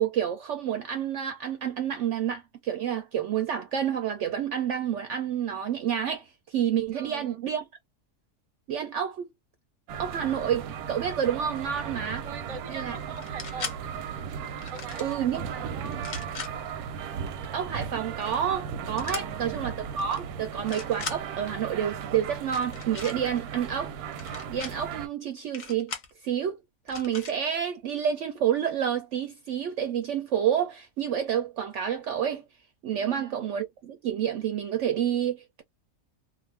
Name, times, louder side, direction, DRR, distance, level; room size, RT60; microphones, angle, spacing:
voice 1, 0.0-7.6 8.7-9.3 10.0-12.3 12.7-13.0 15.0-15.4 17.5-23.9 24.5-25.9 26.2-26.6 26.9-32.4 32.8-35.6, right 9 dB, 65° right, 0.7 m, -29 dB
voice 2, 6.9-7.4 12.2-13.8 14.5-16.2 19.2-19.7 33.0-33.4, right 6 dB, 35° right, 0.6 m, -43 dB
sound 1, 9.9-25.1, right 7 dB, 85° right, 1.1 m, -37 dB
sound 2, 13.2-13.8 14.6-15.1 15.9-16.5 19.0-19.2 20.0-20.2 20.5-21.2 22.4-23.2 24.1-24.7 25.5-26.1 26.9-27.3, left 5 dB, 45° left, 0.7 m, -38 dB
2.5 x 2.5 x 3.1 m
omnidirectional pair, 1.6 m